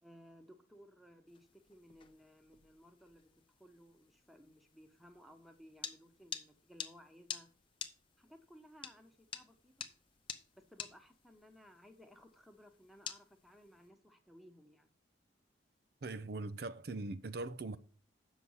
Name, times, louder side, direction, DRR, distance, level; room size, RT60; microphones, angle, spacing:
voice 1, 0.0-3.3 3.6-7.5 8.2-9.9 10.5-14.9, equal, ahead, 1.0 m, -59 dB
sound 1, 1.3-13.9, left 7 dB, 25° left, 0.7 m, -50 dB
voice 2, 16.0-17.8, right 3 dB, 55° right, 0.5 m, -41 dB
8.4 x 6.3 x 5.6 m
head